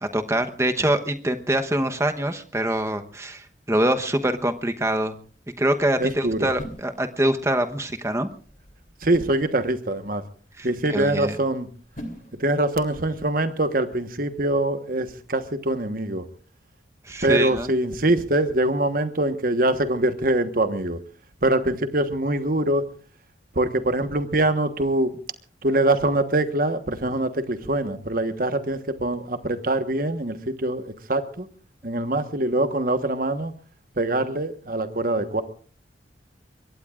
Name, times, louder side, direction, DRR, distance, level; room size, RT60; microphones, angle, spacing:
voice 1, 0.0-5.2 5.6-8.3 10.6-11.4 17.1-17.7, right 1 dB, 15° right, 7 dB, 1.0 m, -24 dB
sound 1, 3.7-13.0, equal, 45° left, 3.0 m, -46 dB
voice 2, 6.0-6.5 9.0-10.2 10.6-11.7 12.4-16.3 17.2-21.0 21.4-22.9 23.5-25.2 25.6-31.5 31.8-33.5 34.0-35.4, right 1 dB, 50° right, 9 dB, 1.3 m, -24 dB
24.5 x 21.5 x 2.5 m, 0.41 s
head